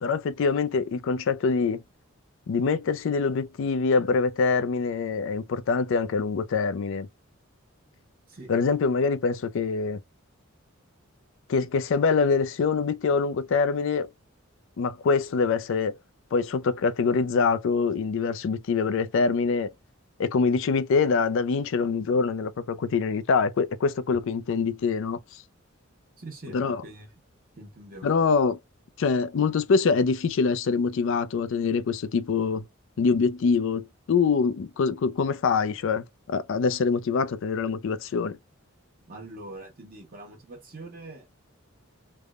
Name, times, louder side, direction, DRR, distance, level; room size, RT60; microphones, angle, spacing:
voice 1, 0.0-1.8 2.5-7.1 8.5-10.0 11.5-14.1 14.8-16.0 16.3-19.7 20.2-25.2 26.5-26.8 28.0-28.6 29.0-32.6 33.0-38.4, left 5 dB, 65° left, 0.4 m, -24 dB
voice 2, 26.2-27.2 27.6-28.1 39.0-41.3, right 2 dB, 45° right, 1.0 m, -43 dB
3.3 x 2.1 x 2.3 m
head